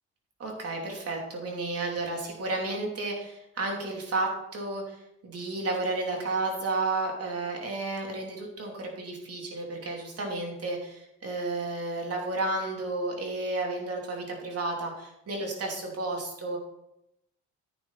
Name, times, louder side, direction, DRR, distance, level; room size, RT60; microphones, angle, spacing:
voice 1, 0.4-5.0 5.2-16.6, right 2 dB, 50° right, 0 dB, 3.2 m, -32 dB
10.0 x 9.4 x 4.1 m, 0.84 s
cardioid pair, 90°, 30 cm